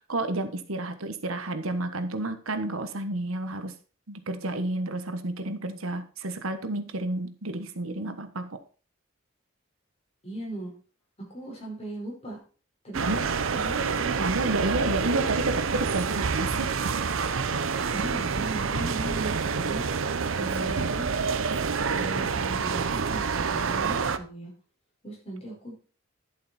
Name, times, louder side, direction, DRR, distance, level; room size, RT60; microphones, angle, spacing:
voice 1, 0.1-3.8 4.1-8.6 13.0-13.2 14.2-16.7, right 2 dB, 90° right, 9 dB, 1.3 m, -30 dB
voice 2, 10.2-10.7 11.3-12.4 12.8-14.3 17.9-19.8 20.4-21.1 21.7-24.5 25.0-25.7, right 1 dB, 30° left, -2 dB, 5.0 m, -38 dB
sound 1, 12.9-24.2, right 5 dB, 75° right, 0.7 m, -27 dB
11.0 x 7.6 x 4.3 m, 0.38 s
head